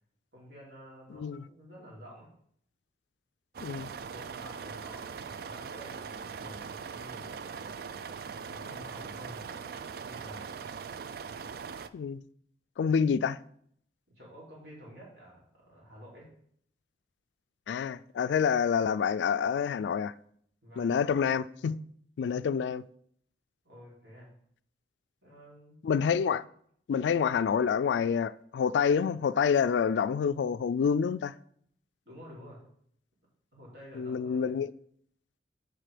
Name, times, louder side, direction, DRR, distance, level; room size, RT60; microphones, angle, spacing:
voice 1, 0.3-2.3 4.1-8.0 8.4-9.7 10.0-10.5 14.2-16.3 20.6-21.0 23.6-24.3 25.2-25.8 32.1-32.6 33.5-34.5, equal, 75° right, 3.7 m, -50 dB
voice 2, 1.1-1.4 3.6-3.9 11.9-12.2 12.8-13.4 17.7-20.1 20.8-21.8 22.2-22.8 25.8-26.4 26.9-31.3 34.0-34.7, left 6 dB, 80° left, 0.3 m, -27 dB
sound 1, 3.5-11.9, right 6 dB, 55° right, 0.4 m, -41 dB
7.5 x 5.1 x 5.0 m
head